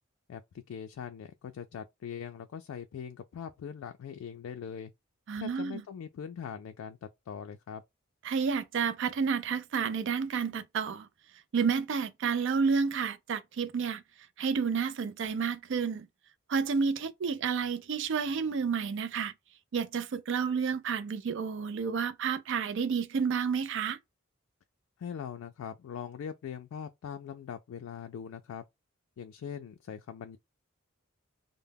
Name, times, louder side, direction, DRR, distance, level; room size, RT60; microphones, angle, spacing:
voice 1, 0.7-4.9 5.3-7.8 25.0-28.6 29.2-30.4, left 7 dB, 75° left, 0.3 m, -41 dB
voice 2, 5.3-5.8 8.2-11.1 11.5-14.0 14.4-16.1 16.5-19.3 19.7-24.0, right 6 dB, 60° right, 0.4 m, -30 dB
2.2 x 2.0 x 3.3 m
head